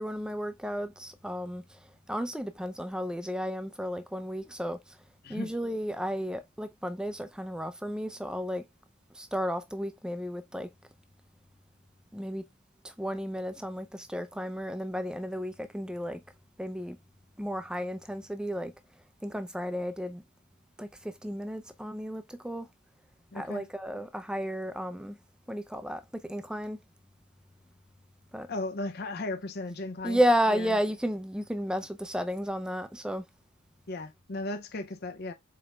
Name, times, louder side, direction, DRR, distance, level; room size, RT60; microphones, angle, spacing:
voice 1, 0.0-1.8 2.1-5.0 5.3-8.6 9.1-10.7 12.1-12.4 12.8-16.2 16.6-17.0 17.4-18.7 19.2-20.2 20.8-22.7 23.3-25.2 25.5-26.8 28.3-28.5 30.0-33.2, equal, 5° right, 0.4 m, -33 dB
voice 2, 23.3-23.7 28.5-30.2 30.5-30.7 33.9-35.3, left 2 dB, 50° left, 0.5 m, -36 dB
5.0 x 4.2 x 2.3 m
head